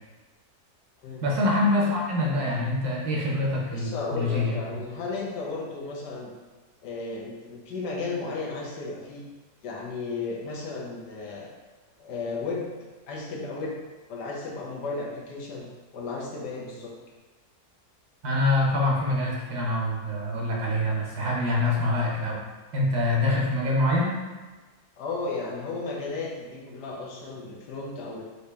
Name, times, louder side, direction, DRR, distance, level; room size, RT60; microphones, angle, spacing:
voice 1, 1.2-4.6 18.2-22.4 22.7-24.2, left 2 dB, 70° right, -3 dB, 1.5 m, -25 dB
voice 2, 3.7-6.3 6.8-9.2 9.6-11.5 12.0-12.7 13.1-13.8 14.1-16.9 25.0-28.2, left 3 dB, 90° left, -2 dB, 1.4 m, -34 dB
4.8 x 2.8 x 3.3 m, 1.3 s
omnidirectional pair, 1.7 m